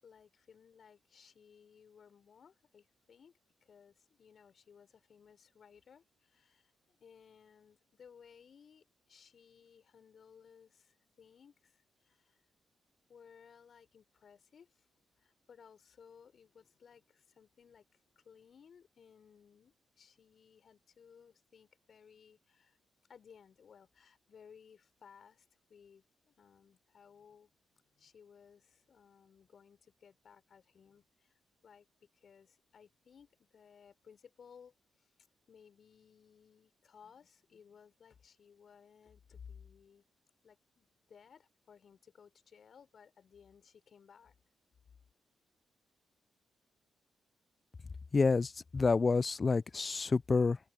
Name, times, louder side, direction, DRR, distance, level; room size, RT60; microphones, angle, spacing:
voice 1, 0.0-3.3 3.6-12.4 13.1-14.9 15.2-17.8 18.1-22.8 23.1-27.5 27.9-31.9 32.1-35.1 35.5-40.0 40.4-44.3, left 7 dB, 60° left, 5.0 m, -60 dB
voice 2, 48.1-50.6, left 4 dB, 40° left, 0.5 m, -28 dB
open air
hypercardioid pair, 40°, 0 cm